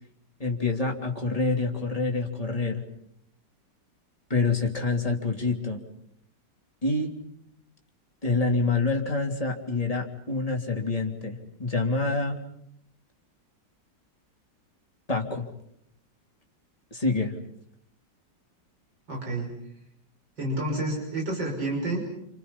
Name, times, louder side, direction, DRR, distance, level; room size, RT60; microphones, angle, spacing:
voice 1, 0.4-2.8 4.3-5.8 6.8-7.1 8.2-12.4 15.1-15.5 16.9-17.3, left 3 dB, 20° left, 1 dB, 3.3 m, -27 dB
voice 2, 19.1-19.5 20.4-22.0, right 2 dB, 80° right, 0 dB, 6.8 m, -29 dB
29.5 x 28.5 x 5.7 m, 0.73 s
omnidirectional pair, 2.0 m